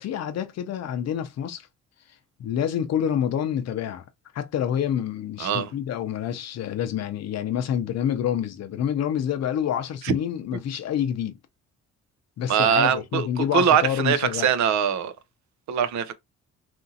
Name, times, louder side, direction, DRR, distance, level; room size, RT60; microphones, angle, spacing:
voice 1, 0.0-1.7 2.4-4.0 4.3-11.3 12.4-14.5, left 9 dB, 60° left, 0.5 m, -27 dB
voice 2, 5.4-5.7 10.0-10.1 12.5-15.1 15.7-16.1, right 8 dB, 70° right, 0.5 m, -22 dB
2.9 x 2.5 x 2.6 m
cardioid pair, 90°, 30 cm